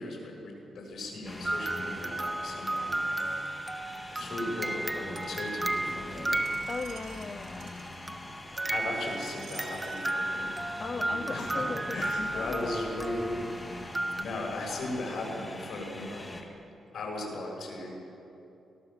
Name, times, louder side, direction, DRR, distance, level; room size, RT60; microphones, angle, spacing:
voice 1, 0.0-3.4 4.1-6.5 8.7-10.5 11.0-13.4 13.7-16.3 16.9-17.9, left 2 dB, 65° left, 0 dB, 7.0 m, -37 dB
sound 1, 1.2-16.4, left 2 dB, 20° left, 2.5 m, -44 dB
sound 2, 1.4-7.2 8.1-14.2, right 2 dB, 15° right, 1.0 m, -34 dB
Screech, 5.1-10.1 10.8-10.9, right 7 dB, 75° right, 2.5 m, -53 dB
voice 2, 6.7-7.8 10.8-12.9, left 4 dB, 40° left, 6 dB, 0.8 m, -38 dB
25.0 x 18.0 x 7.4 m, 2.9 s
cardioid pair, 125°, 0 cm